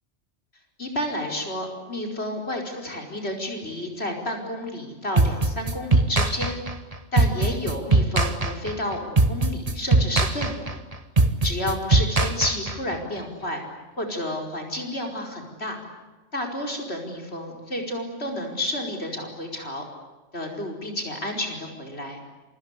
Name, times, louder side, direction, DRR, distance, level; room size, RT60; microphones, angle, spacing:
voice 1, 0.8-6.6 7.1-10.8 11.4-13.6 14.0-15.8 16.3-19.8 20.3-22.2, left 1 dB, 60° left, 2 dB, 5.2 m, -30 dB
sound 1, 5.2-13.0, right 3 dB, 30° right, 1.6 m, -21 dB
28.0 x 25.5 x 8.3 m, 1.1 s
omnidirectional pair, 1.2 m